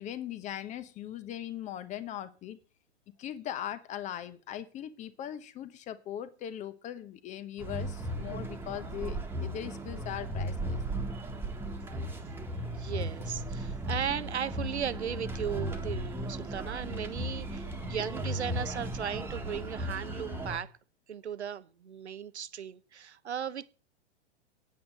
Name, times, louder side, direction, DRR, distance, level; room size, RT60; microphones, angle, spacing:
voice 1, 0.0-2.6 3.2-10.8 17.6-17.7, left 11 dB, 20° left, 0.9 m, -40 dB
sound 1, 7.6-20.6, right 1 dB, 5° right, 1.6 m, -36 dB
voice 2, 12.7-20.7 21.1-23.7, right 8 dB, 70° right, 1.0 m, -37 dB
9.5 x 8.7 x 7.7 m
figure-of-eight pair, 105°, 35 cm